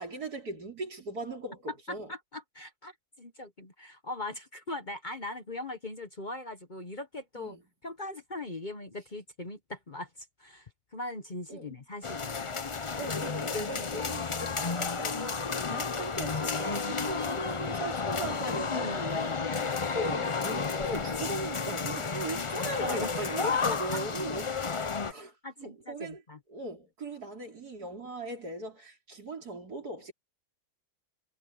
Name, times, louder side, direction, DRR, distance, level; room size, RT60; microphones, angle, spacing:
voice 1, 0.0-2.1 7.4-7.6 11.5-11.8 13.0-19.3 19.9-24.5 25.1-26.2 26.5-30.1, right 2 dB, 70° right, 4.7 m, -39 dB
voice 2, 1.9-7.6 7.8-12.8 17.0-17.1 18.7-19.8 22.8-23.1 23.5-24.0 25.4-26.4, left 2 dB, 30° left, 1.1 m, -40 dB
sound 1, 12.0-25.1, left 5 dB, 50° left, 0.3 m, -32 dB
omnidirectional pair, 1.7 m